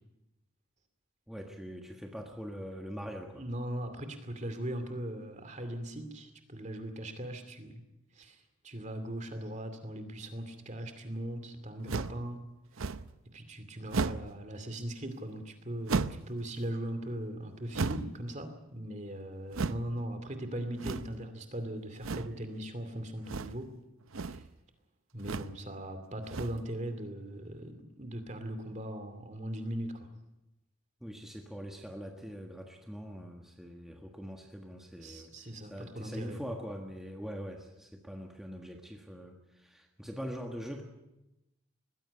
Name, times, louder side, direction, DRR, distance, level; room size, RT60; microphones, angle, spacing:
voice 1, 1.3-3.4 31.0-40.8, equal, ahead, 1 dB, 1.5 m, -43 dB
voice 2, 3.4-7.8 8.1-12.4 12.7-12.9 13.2-23.7 24.2-24.5 25.1-30.1 35.0-36.4, right 1 dB, 35° right, 8 dB, 2.5 m, -39 dB
sound 1, 11.9-12.2 12.8-13.2 13.9-14.3 15.9-16.3 17.7-18.2 19.5-19.9 20.8-21.2 22.0-22.4 23.2-23.7 24.0-24.5 25.2-25.6 26.2-26.7, right 4 dB, 75° right, 0.7 m, -34 dB
20.5 x 15.5 x 9.7 m, 0.94 s
head